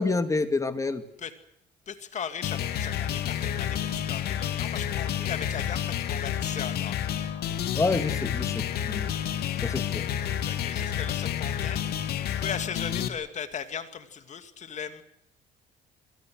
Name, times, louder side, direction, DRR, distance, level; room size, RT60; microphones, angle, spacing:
voice 1, 0.0-1.0 7.8-9.1 9.6-10.1, left 3 dB, 20° left, 9 dB, 2.3 m, -28 dB
voice 2, 1.9-7.1 10.4-11.8 12.3-15.0, left 7 dB, 45° left, 9 dB, 2.5 m, -37 dB
sound 1, 2.4-13.1, left 10 dB, 70° left, 2.4 m, -30 dB
28.0 x 21.5 x 6.5 m, 0.79 s
cardioid pair, 110°, 17 cm